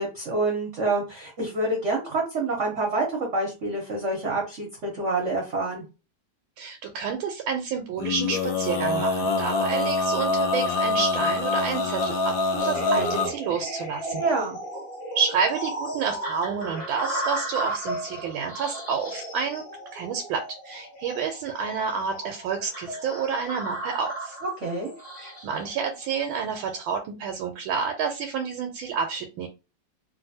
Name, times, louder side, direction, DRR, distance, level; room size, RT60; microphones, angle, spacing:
voice 1, 0.0-5.8 14.2-14.6 24.6-24.9, right 2 dB, 55° right, -1 dB, 0.9 m, -27 dB
voice 2, 6.6-14.2 15.1-19.6 19.9-24.4 25.2-29.5, right 6 dB, 85° right, 4 dB, 1.4 m, -29 dB
Male singing, 8.0-13.3, left 3 dB, 65° left, 0.8 m, -25 dB
sound 1, 12.6-26.8, right 1 dB, 40° left, 1.2 m, -34 dB
3.1 x 2.6 x 2.7 m, 0.30 s
omnidirectional pair, 2.2 m